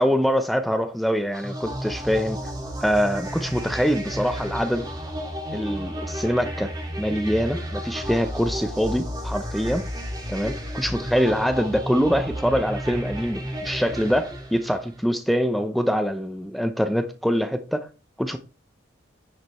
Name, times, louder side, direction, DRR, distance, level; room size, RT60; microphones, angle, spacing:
voice 1, 0.0-2.4 2.8-4.8 5.5-6.7 7.0-9.8 10.3-17.9 18.2-18.4, equal, ahead, 0.6 m, -24 dB
sound 1, 1.3-15.0, equal, 20° right, 2.2 m, -32 dB
10.5 x 5.1 x 4.3 m
head